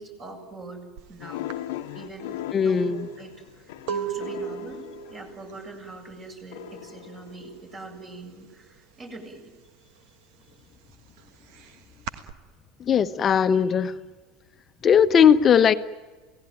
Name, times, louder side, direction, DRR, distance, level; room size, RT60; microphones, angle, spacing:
voice 1, 0.0-1.5 1.9-3.6 3.9-4.8 5.1-9.5, right 3 dB, 35° right, 1 dB, 7.7 m, -41 dB
sound 1, 1.0-1.1 1.5-7.2 7.4-7.9 8.2-9.4 9.8-12.3, right 9 dB, 55° right, 1.5 m, -37 dB
sound 2, 1.2-5.8 6.5-8.1, left 13 dB, 65° left, 1.3 m, -39 dB
voice 2, 2.5-3.1 12.9-13.9 14.8-15.7, left 7 dB, 35° left, 11 dB, 1.2 m, -18 dB
29.0 x 17.5 x 9.4 m, 1.3 s
figure-of-eight pair, 75°, 0 cm